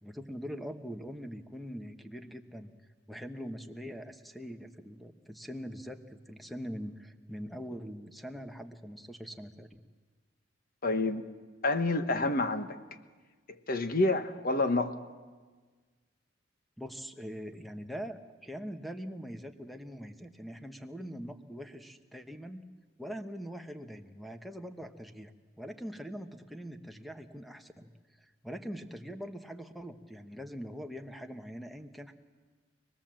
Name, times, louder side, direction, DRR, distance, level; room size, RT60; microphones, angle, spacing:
voice 1, 0.0-2.8 3.1-9.8 16.8-22.7 23.0-27.9 28.4-32.1, equal, ahead, 7 dB, 1.1 m, -43 dB
voice 2, 10.8-11.2 11.6-12.8 13.7-15.0, left 2 dB, 45° left, 9 dB, 1.2 m, -28 dB
26.0 x 20.0 x 7.5 m, 1.4 s
head